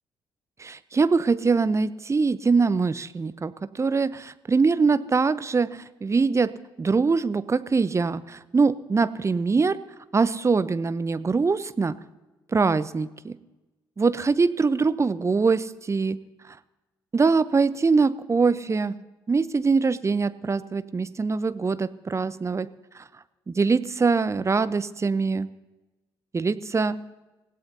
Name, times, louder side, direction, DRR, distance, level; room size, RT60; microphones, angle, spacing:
voice 1, 0.6-6.5 6.8-9.8 10.1-12.0 12.5-13.4 14.0-16.2 17.1-18.9 19.3-22.7 22.9-23.0 23.5-25.5 26.3-27.0, right 4 dB, 25° right, 15 dB, 0.7 m, -23 dB
26.5 x 16.0 x 2.8 m, 1.1 s
figure-of-eight pair, 45°, 12 cm